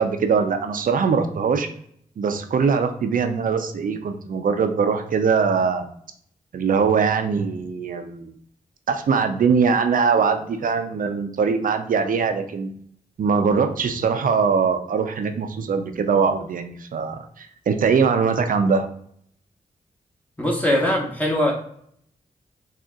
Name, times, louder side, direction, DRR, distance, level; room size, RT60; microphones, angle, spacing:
voice 1, 0.0-1.7 2.2-5.9 6.5-8.3 8.9-12.7 13.2-18.9, right 5 dB, 65° right, 7 dB, 0.5 m, -22 dB
voice 2, 20.4-21.5, left 1 dB, 10° left, -1 dB, 1.0 m, -21 dB
3.8 x 2.4 x 2.3 m, 0.65 s
cardioid pair, 50°, 15 cm